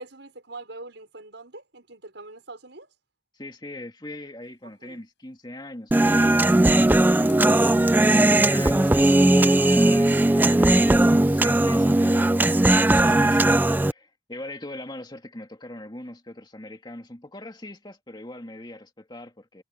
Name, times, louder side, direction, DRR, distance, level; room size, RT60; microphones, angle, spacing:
voice 1, 0.0-2.9 4.6-5.0, right 2 dB, 70° right, 5.9 m, -43 dB
voice 2, 3.3-6.6 7.3-19.6, left 1 dB, 25° left, 2.7 m, -40 dB
sound 1, 4.4-5.2 7.1-8.0 8.7-9.0 9.4-9.5 9.7-10.0, left 13 dB, 65° left, 6.8 m, -54 dB
Human voice, 5.9-13.9, right 1 dB, 10° right, 0.3 m, -18 dB
head